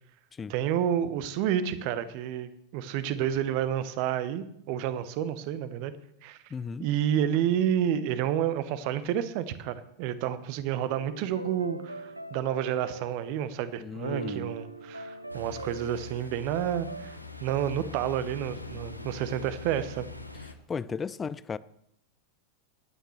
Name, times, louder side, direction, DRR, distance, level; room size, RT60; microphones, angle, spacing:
voice 1, 0.5-5.9 6.2-6.4 6.8-20.1, right 10 dB, 45° right, 0.9 m, -30 dB
voice 2, 6.5-6.9 13.8-14.5 20.7-21.6, left 6 dB, 20° left, 0.4 m, -35 dB
sound 1, 10.8-13.5 13.9-17.2, right 3 dB, 85° right, 0.6 m, -41 dB
Ocean, 15.3-20.5, left 3 dB, 90° left, 0.9 m, -43 dB
21.5 x 9.1 x 3.2 m
figure-of-eight pair, 90°, 0 cm